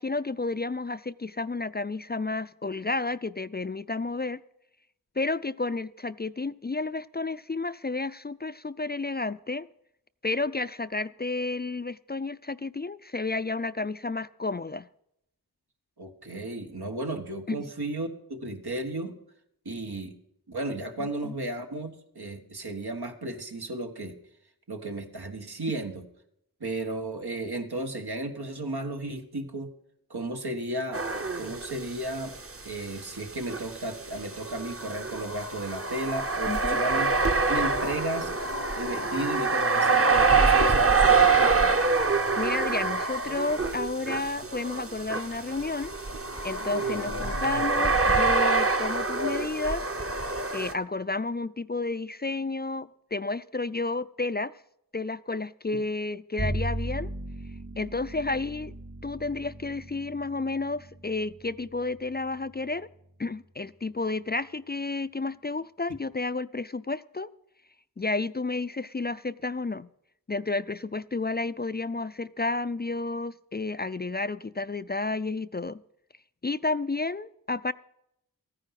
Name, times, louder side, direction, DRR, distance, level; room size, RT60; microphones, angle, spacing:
voice 1, 0.0-4.4 5.2-9.7 10.2-14.9 17.5-17.6 21.0-21.3 36.5-36.8 42.4-45.9 46.4-49.9 50.5-54.5 54.9-57.1 57.8-58.7 59.0-62.9 63.2-67.3 68.0-69.9 70.3-75.8 76.4-77.7, left 3 dB, 30° left, 0.4 m, -31 dB
voice 2, 16.0-19.1 19.6-20.2 20.5-24.1 24.7-26.0 26.6-29.7 30.1-31.0 31.4-32.3 32.6-37.1 37.5-38.3 38.7-41.7, right 1 dB, 85° right, 1.6 m, -34 dB
sound 1, 30.9-32.1 32.3-32.4 33.5-50.7, right 4 dB, 35° right, 0.9 m, -25 dB
sound 2, 37.0-48.0, left 4 dB, 90° left, 0.9 m, -43 dB
Bowed string instrument, 56.4-62.8, right 1 dB, 60° right, 4.0 m, -37 dB
14.0 x 9.8 x 5.9 m
wide cardioid pair, 45°, 37 cm